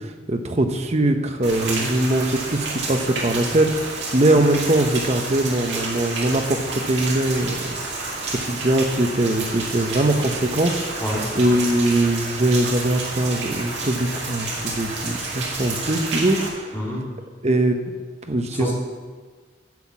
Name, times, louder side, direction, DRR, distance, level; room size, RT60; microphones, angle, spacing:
voice 1, 0.0-7.7 8.0-11.0 11.3-16.8 17.4-17.8 18.3-18.7, right 1 dB, 35° right, 6 dB, 0.8 m, -22 dB
Rain, 1.4-16.5, right 3 dB, 65° right, 2.5 m, -30 dB
voice 2, 16.7-17.1 18.5-18.7, equal, 10° left, -5 dB, 2.2 m, -27 dB
10.5 x 5.8 x 7.2 m, 1.5 s
head